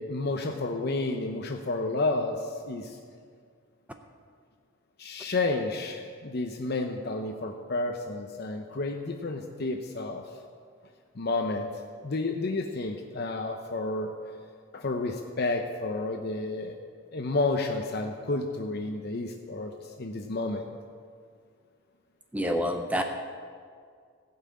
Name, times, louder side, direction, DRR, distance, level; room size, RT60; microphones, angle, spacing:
voice 1, 0.0-3.0 5.0-10.2 11.1-11.7 12.0-14.1 14.7-16.8 17.1-20.7, left 2 dB, 50° left, 3 dB, 0.7 m, -31 dB
voice 2, 22.3-23.0, equal, 5° right, 5 dB, 0.5 m, -27 dB
15.5 x 5.7 x 8.5 m, 2.1 s
head